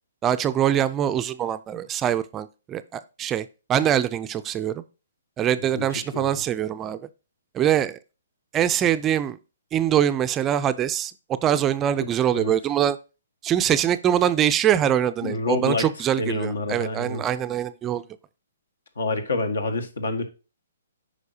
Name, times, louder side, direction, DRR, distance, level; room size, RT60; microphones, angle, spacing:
voice 1, 0.2-4.8 5.4-7.0 7.5-8.0 8.5-9.4 9.7-11.1 11.4-13.0 13.4-18.0, right 10 dB, 20° right, 0.4 m, -23 dB
voice 2, 5.7-6.4 12.3-12.5 15.2-15.9 16.2-17.2 19.0-20.3, left 3 dB, 85° left, 1.7 m, -27 dB
8.2 x 5.2 x 2.7 m
hypercardioid pair, 150°, 0 cm